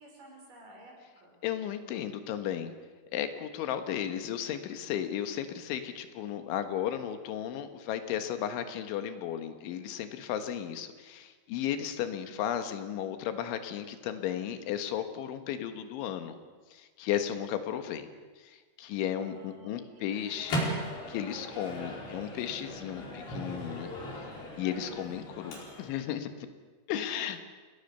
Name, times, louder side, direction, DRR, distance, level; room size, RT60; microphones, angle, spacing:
voice 1, 0.0-1.4 19.2-20.6 24.9-25.3 26.9-27.4, right 1 dB, 45° right, 0 dB, 6.9 m, -53 dB
voice 2, 1.4-2.7 3.1-16.4 16.7-18.1 18.4-20.6 21.1-23.9 24.6-26.3 26.9-27.4, left 10 dB, 85° left, 8 dB, 3.9 m, -34 dB
Microwave oven, 20.1-26.1, equal, 55° left, 6.7 m, -38 dB
28.5 x 19.0 x 6.9 m, 1.4 s
omnidirectional pair, 5.3 m